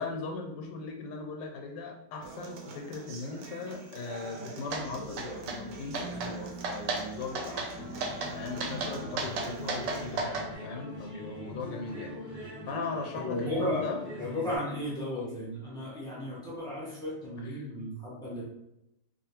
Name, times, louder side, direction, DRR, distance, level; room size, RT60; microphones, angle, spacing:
voice 1, 0.0-8.1 8.3-14.0 17.4-17.7, left 3 dB, 85° left, 2 dB, 1.3 m, -39 dB
Human voice / Acoustic guitar, 2.2-10.2, right 2 dB, 70° right, 1.0 m, -44 dB
sound 1, 4.7-4.8 5.2-5.6 5.9-6.3 6.6-7.0 7.3-7.7 8.0-8.3 8.6-10.5, right 3 dB, 90° right, 1.3 m, -33 dB
sound 2, 7.7-14.6, left 1 dB, 25° right, 1.2 m, -42 dB
voice 2, 13.2-13.8 14.2-18.4, left 1 dB, 5° left, -8 dB, 0.5 m, -34 dB
2.8 x 2.6 x 2.9 m, 0.86 s
omnidirectional pair, 1.9 m